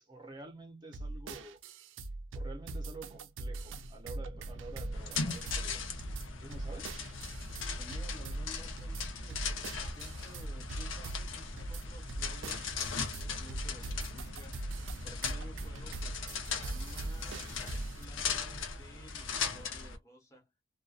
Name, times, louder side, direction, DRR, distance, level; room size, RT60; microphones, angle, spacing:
voice 1, 0.0-1.6 2.3-5.9 6.4-7.0 15.7-16.0, right 3 dB, 20° right, 0.5 m, -49 dB
sound 1, 0.9-18.0, right 2 dB, 80° right, 0.4 m, -42 dB
sound 2, 4.0-18.6, equal, 45° left, 0.6 m, -47 dB
sound 3, 4.9-20.0, left 5 dB, 80° left, 0.7 m, -39 dB
voice 2, 7.8-14.6 15.0-20.5, equal, 15° left, 0.9 m, -55 dB
2.5 x 2.2 x 2.2 m
head